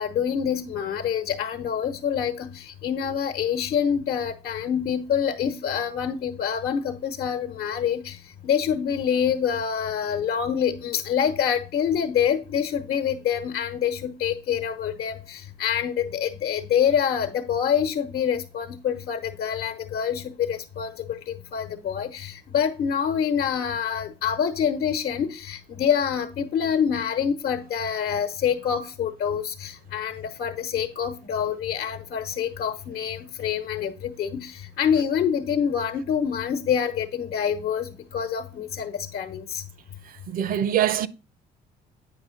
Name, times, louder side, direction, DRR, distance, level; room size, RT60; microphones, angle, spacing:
voice 1, 0.0-8.2 8.4-39.6, left 8 dB, 65° left, 1.1 m, -26 dB
voice 2, 40.3-41.1, right 10 dB, 60° right, 0.7 m, -23 dB
9.2 x 5.7 x 3.8 m
cardioid pair, 110°, 17 cm